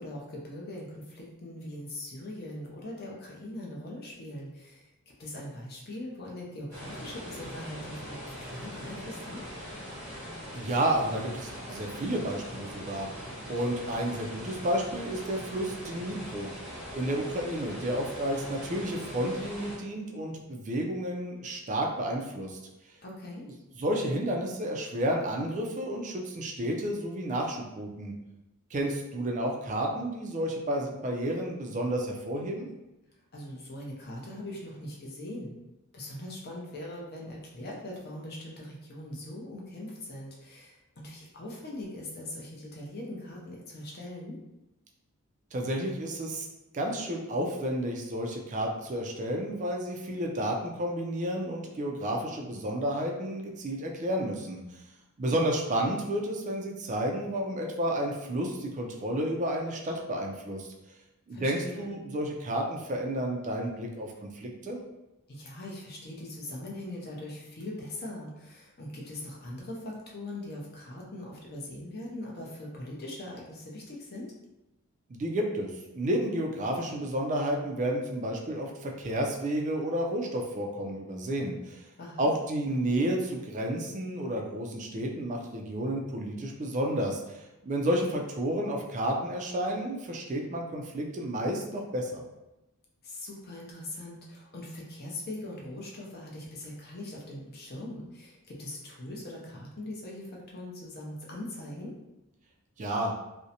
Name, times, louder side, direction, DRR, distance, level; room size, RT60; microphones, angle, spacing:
voice 1, 0.0-4.9 5.2-9.4 23.0-23.5 33.3-35.6 35.9-44.4 55.3-55.4 61.3-61.9 65.3-74.3 82.0-82.3 93.0-101.9, left 1 dB, 45° left, -2 dB, 0.6 m, -41 dB
sound 1, 6.7-19.8, equal, 10° left, 0.8 m, -41 dB
voice 2, 10.5-13.1 13.5-16.5 16.9-22.6 23.8-28.1 28.7-32.7 45.5-46.5 46.7-54.6 55.2-60.7 61.3-64.8 75.1-81.9 82.2-92.2 102.8-103.1, right 1 dB, 35° right, 0 dB, 0.3 m, -31 dB
2.5 x 2.0 x 2.7 m, 0.97 s
head